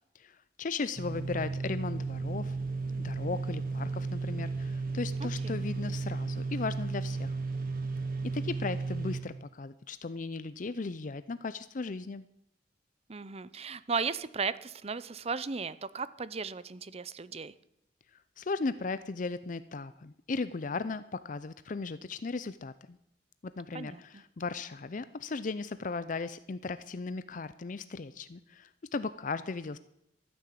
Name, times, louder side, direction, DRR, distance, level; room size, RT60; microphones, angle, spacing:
voice 1, 0.2-2.6 3.0-7.4 8.3-12.2 18.4-23.0 23.4-29.8, left 4 dB, 45° left, 14 dB, 0.5 m, -36 dB
sound 1, 1.0-9.2, right 3 dB, 50° right, 2.0 m, -34 dB
voice 2, 5.2-5.6 13.1-17.5 23.7-24.0, right 5 dB, 35° right, 16 dB, 0.7 m, -36 dB
14.0 x 9.8 x 8.5 m, 0.80 s
head